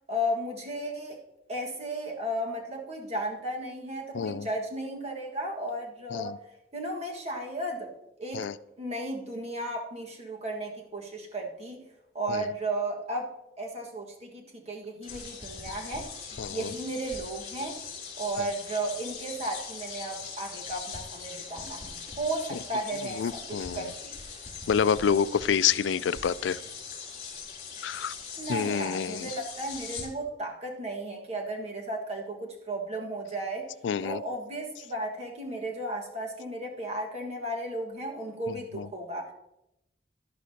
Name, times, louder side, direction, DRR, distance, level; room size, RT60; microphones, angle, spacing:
voice 1, 0.1-1.2 1.5-6.4 6.7-7.9 8.2-8.5 8.8-11.8 12.1-13.3 13.6-16.1 16.5-17.8 18.2-24.1 28.4-33.7 34.0-39.3, right 1 dB, 35° right, 0 dB, 1.6 m, -34 dB
voice 2, 4.1-4.5 6.1-6.4 8.3-8.5 12.3-12.4 16.4-16.7 22.5-22.6 23.2-23.8 24.7-26.6 27.8-28.1 28.5-29.3 33.8-34.2 38.7-38.8, left 7 dB, 85° left, 16 dB, 0.4 m, -27 dB
sound 1, 15.0-30.1, left 5 dB, 45° left, 3.2 m, -41 dB
11.5 x 11.5 x 2.8 m, 0.89 s
head